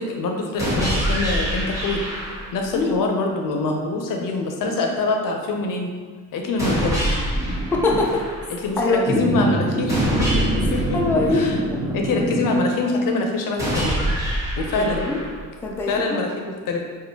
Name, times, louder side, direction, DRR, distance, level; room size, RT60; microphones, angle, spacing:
voice 1, 0.0-2.0 2.5-5.9 6.3-7.1 8.5-11.0 11.3-11.6 11.9-14.0 14.6-15.1 15.9-16.8, left 3 dB, 75° left, 2 dB, 0.6 m, -24 dB
sound 1, 0.6-2.6 6.6-8.6 9.9-11.9 13.6-15.6, equal, 10° right, 1.1 m, -25 dB
sound 2, 7.3-8.1 9.0-12.6, right 1 dB, 30° right, 1.3 m, -26 dB
voice 2, 7.7-8.2 8.8-9.2 10.9-11.7 14.8-15.2 15.6-16.2, left 3 dB, 5° left, -2 dB, 0.4 m, -22 dB
4.4 x 2.4 x 2.8 m, 1.5 s
cardioid pair, 120°, 33 cm